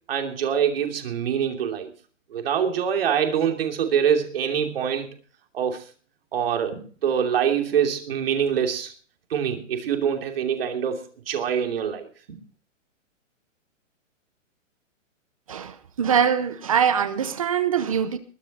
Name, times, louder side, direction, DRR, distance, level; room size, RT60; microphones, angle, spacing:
voice 1, 0.1-1.9 2.3-5.1 5.5-5.8 6.3-8.9 9.3-12.4, right 8 dB, 50° right, 4 dB, 2.9 m, -25 dB
voice 2, 15.5-18.2, right 8 dB, 30° right, 13 dB, 0.8 m, -23 dB
21.5 x 9.6 x 4.2 m, 0.41 s
hypercardioid pair, 175°, 38 cm